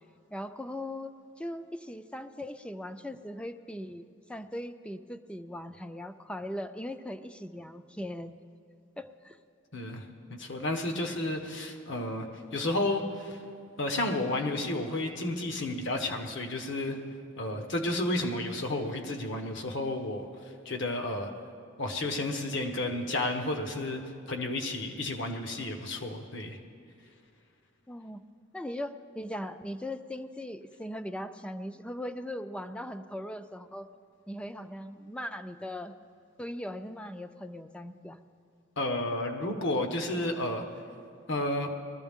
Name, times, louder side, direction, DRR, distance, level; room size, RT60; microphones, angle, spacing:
voice 1, 0.3-4.0 4.3-8.3 9.0-9.4 27.9-28.2 28.5-33.9 34.3-35.9 36.4-38.2, left 1 dB, 5° left, 9 dB, 0.4 m, -39 dB
voice 2, 9.7-10.0 10.3-12.3 12.5-13.4 13.8-17.0 17.4-20.3 20.6-21.3 21.8-24.0 24.3-26.6 38.8-40.6 41.3-41.7, left 1 dB, 65° left, 4 dB, 1.2 m, -31 dB
20.5 x 14.0 x 3.6 m, 2.4 s
head